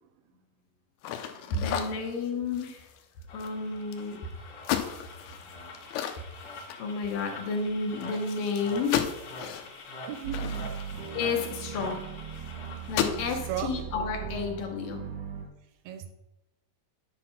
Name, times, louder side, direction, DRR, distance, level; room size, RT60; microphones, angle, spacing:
sound 1, 1.0-4.2 4.6-7.3 7.6-7.7 8.0-11.9 12.3-12.5 12.8-13.3, left 10 dB, 90° left, 2.6 m, -35 dB
voice 1, 1.5-2.9 3.3-4.2 6.8-9.0 11.1-12.0 12.8-15.1, left 4 dB, 70° left, 2 dB, 2.3 m, -31 dB
sound 2, 3.3-13.3, left 2 dB, 55° left, 2.1 m, -45 dB
voice 2, 10.1-10.7 13.5-13.8 15.9-16.1, right 10 dB, 80° right, 8 dB, 2.4 m, -36 dB
sound 3, 10.2-15.5, right 8 dB, 65° right, 1.5 m, -38 dB
10.0 x 4.2 x 5.7 m, 0.91 s
omnidirectional pair, 4.5 m